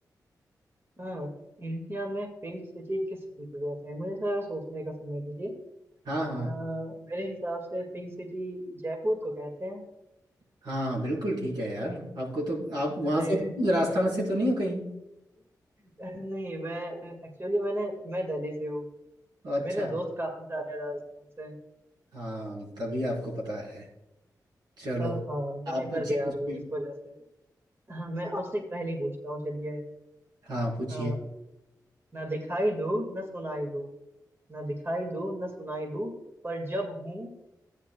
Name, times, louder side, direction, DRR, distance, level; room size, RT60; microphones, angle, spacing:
voice 1, 1.0-1.3 1.6-5.5 6.3-9.8 13.0-13.5 16.0-18.9 19.6-21.0 21.4-21.6 25.0-27.1 27.9-29.8 30.9-31.2 32.1-33.9 34.5-36.1 36.4-37.3, right 1 dB, 35° right, 2 dB, 2.0 m, -33 dB
voice 2, 6.1-6.5 10.6-14.8 19.4-19.9 22.1-23.9 24.8-25.2 25.7-26.6 30.5-31.1, equal, 85° right, -4 dB, 3.9 m, -30 dB
14.5 x 9.7 x 2.3 m, 0.94 s
cardioid pair, 55°, 7 cm